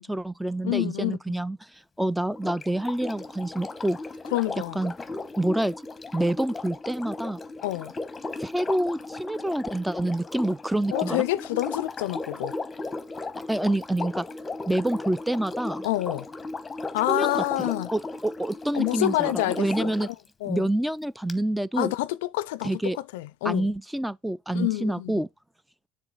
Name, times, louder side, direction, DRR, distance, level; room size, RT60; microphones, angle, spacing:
voice 1, 0.0-1.6 2.0-4.0 4.8-4.9 5.4-5.7 6.1-7.4 8.4-11.2 13.5-14.3 14.7-15.9 17.1-20.1 20.4-21.9 22.6-23.0 23.4-25.3, right 1 dB, 5° right, 0.4 m, -27 dB
voice 2, 0.6-1.4 4.3-4.8 7.6-7.9 10.9-12.5 15.8-16.3 16.9-17.9 18.7-19.9 20.4-20.7 21.8-23.7 24.5-25.2, left 17 dB, 85° left, 0.3 m, -28 dB
Sink (filling or washing), 2.3-20.1 21.3-21.4, left 3 dB, 20° left, 1.0 m, -36 dB
7.1 x 3.4 x 3.9 m
supercardioid pair, 80°, 0 cm